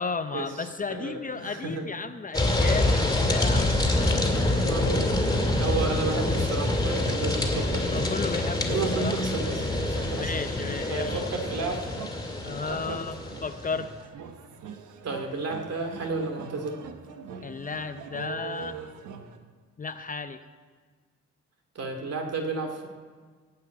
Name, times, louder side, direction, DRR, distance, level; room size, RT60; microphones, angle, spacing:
voice 1, 0.0-4.3 7.9-9.1 9.9-11.3 12.4-13.9 17.4-18.8 19.8-20.4, left 4 dB, 25° left, 10 dB, 0.6 m, -34 dB
voice 2, 0.9-1.9 4.1-5.1 5.6-8.0 8.7-10.3 10.9-11.8 12.7-13.0 15.0-16.8 21.7-22.9, right 3 dB, 55° right, 3 dB, 2.4 m, -32 dB
sound 1, 2.3-13.8, left 2 dB, 10° left, 2.4 m, -26 dB
sound 2, 5.1-19.4, right 6 dB, 85° right, 1.2 m, -43 dB
17.0 x 5.8 x 9.0 m, 1.5 s
cardioid pair, 90°, 30 cm